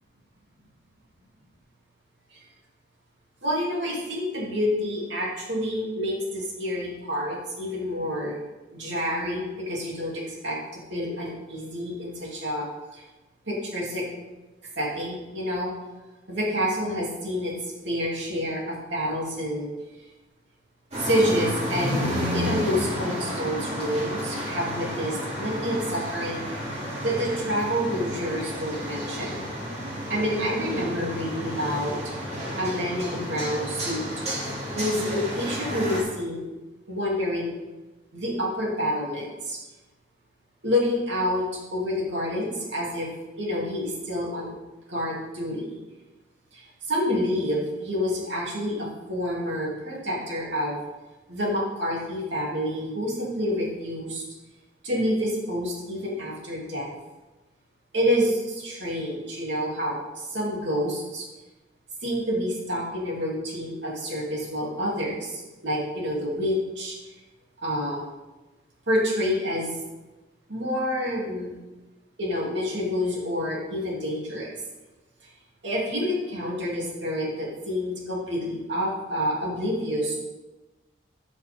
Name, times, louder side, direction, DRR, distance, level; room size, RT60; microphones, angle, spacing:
voice 1, 3.4-8.4 8.7-12.7 12.9-13.0 13.5-14.0 14.8-15.7 16.3-19.7 21.0-29.5 30.1-31.9 32.6-34.1 34.8-36.4 36.9-37.5 38.1-39.6 40.6-41.5 41.7-43.1 43.4-44.5 44.9-45.8 46.5-50.8 51.3-54.2 54.8-56.9 57.9-61.2 62.0-67.1 67.6-68.0 68.9-69.8 70.5-71.5 72.2-74.5 75.2-75.3 75.6-80.2, equal, 65° right, -4 dB, 3.0 m, -28 dB
sound 1, 20.9-36.0, equal, 35° right, 2.9 m, -31 dB
14.0 x 6.3 x 3.7 m, 1.1 s
head